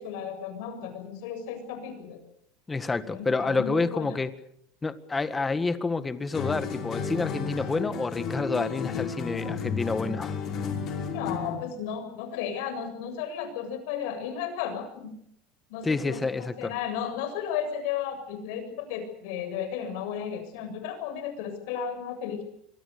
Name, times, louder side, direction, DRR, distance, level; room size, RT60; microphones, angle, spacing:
voice 1, 0.0-2.2 3.1-4.2 11.1-15.2 15.7-22.4, left 8 dB, 75° left, 8 dB, 7.4 m, -34 dB
voice 2, 2.7-4.3 4.8-10.4 15.8-16.7, left 3 dB, 15° left, 12 dB, 1.7 m, -28 dB
sound 1, 6.3-11.7, left 6 dB, 45° left, 5.6 m, -32 dB
26.0 x 23.5 x 6.8 m, 0.72 s
supercardioid pair, 125°, 0 cm